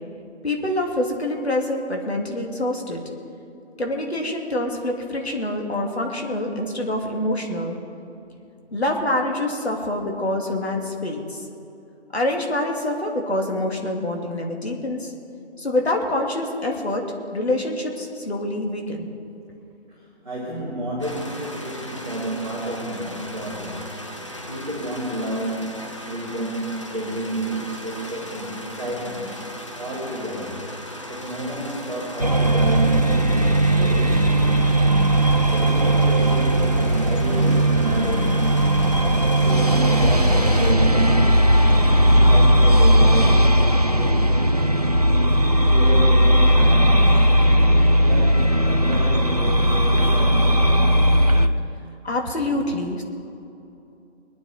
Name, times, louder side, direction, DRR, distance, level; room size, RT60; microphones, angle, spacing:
voice 1, 0.4-3.0 3.8-7.8 8.7-11.5 12.1-15.1 15.6-17.0 17.3-19.1 51.4-51.5 52.0-53.0, left 1 dB, 65° left, 1 dB, 2.9 m, -26 dB
voice 2, 19.9-29.4 29.8-30.7 31.1-34.5 35.1-38.8 39.4-43.5 43.9-44.2 45.2-45.4 45.6-47.4 47.9-50.9, right 1 dB, ahead, -18 dB, 1.3 m, -31 dB
sound 1, 21.0-40.7, equal, 25° left, 0.9 m, -37 dB
sound 2, 32.2-51.5, right 1 dB, 35° right, 0.5 m, -17 dB
23.5 x 9.5 x 4.5 m, 2.7 s
figure-of-eight pair, 170°, 34 cm